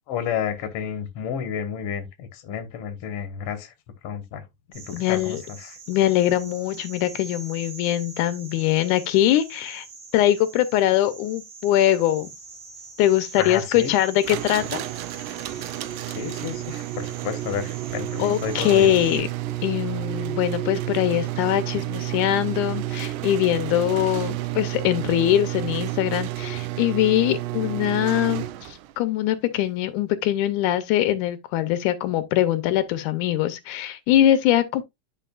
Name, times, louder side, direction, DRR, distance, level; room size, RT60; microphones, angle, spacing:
voice 1, 0.1-3.7 4.0-4.4 4.7-5.8 13.4-13.9 16.1-19.0, left 8 dB, 60° left, 1.9 m, -31 dB
sound 1, 4.7-19.2, right 4 dB, 55° right, 4.1 m, -43 dB
voice 2, 4.9-5.4 5.9-9.9 10.1-12.3 13.0-14.8 18.2-19.3 19.6-34.8, left 12 dB, 85° left, 2.1 m, -22 dB
sound 2, 14.2-28.9, right 16 dB, 85° right, 2.1 m, -30 dB
10.0 x 5.3 x 2.3 m
omnidirectional pair, 3.6 m